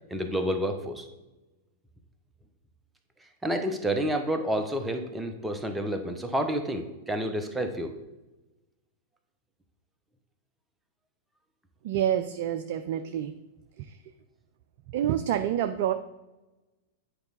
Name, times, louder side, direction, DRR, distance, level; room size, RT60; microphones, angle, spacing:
voice 1, 0.1-1.1 3.4-8.0, equal, 5° right, 5 dB, 1.0 m, -29 dB
voice 2, 11.8-13.3 14.9-15.9, right 10 dB, 50° right, 9 dB, 0.4 m, -27 dB
8.8 x 4.7 x 4.1 m, 1.0 s
figure-of-eight pair, 100°, 0 cm